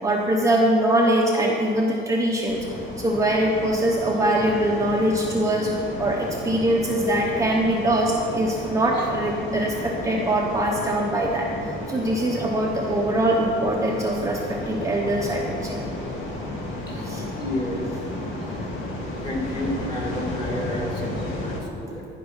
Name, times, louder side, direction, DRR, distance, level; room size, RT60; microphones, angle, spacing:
voice 1, 0.0-2.7 3.0-5.7 6.0-15.8 17.0-17.2 21.8-21.9, right 1 dB, 15° right, -1 dB, 0.7 m, -23 dB
sound 1, 2.5-21.6, left 1 dB, 70° left, 1.9 m, -33 dB
voice 2, 16.9-18.7 19.0-22.1, left 1 dB, 20° left, -2 dB, 1.9 m, -32 dB
15.5 x 5.3 x 5.6 m, 2.8 s
cardioid pair, 150°, 21 cm